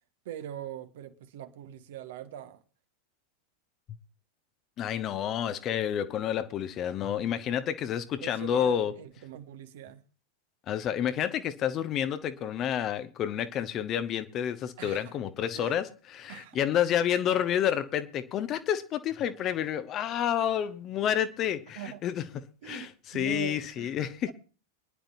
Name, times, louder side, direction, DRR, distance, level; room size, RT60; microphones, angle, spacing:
voice 1, 0.2-2.6 8.2-10.0 14.8-15.1 15.5-15.8 16.3-16.6 17.1-17.3 21.7-22.0 22.6-24.0 24.3-24.4, right 11 dB, 55° right, 1.5 m, -42 dB
voice 2, 4.8-8.9 10.7-22.2 22.6-24.3, left 10 dB, 30° left, 1.2 m, -29 dB
24.5 x 11.0 x 2.7 m
figure-of-eight pair, 90°, 0 cm